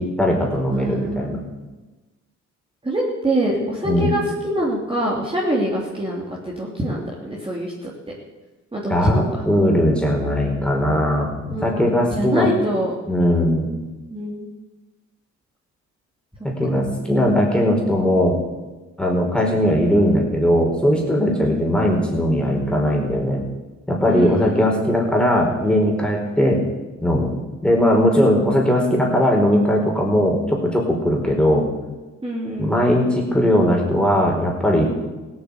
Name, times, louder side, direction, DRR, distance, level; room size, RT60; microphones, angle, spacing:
voice 1, 0.0-1.4 3.8-4.1 8.9-12.5 13.1-13.7 16.6-18.4 19.0-23.4 23.9-26.6 27.0-27.3 27.6-31.7 32.6-34.9, equal, 5° left, -1 dB, 4.6 m, -19 dB
voice 2, 0.7-1.4 2.8-7.9 8.7-9.2 11.5-12.9 14.1-14.5 16.7-16.8 21.3-21.7 24.1-24.9 32.2-32.7, right 1 dB, 20° right, -4 dB, 3.2 m, -25 dB
16.5 x 8.7 x 8.1 m, 1.2 s
cardioid pair, 90°, 30 cm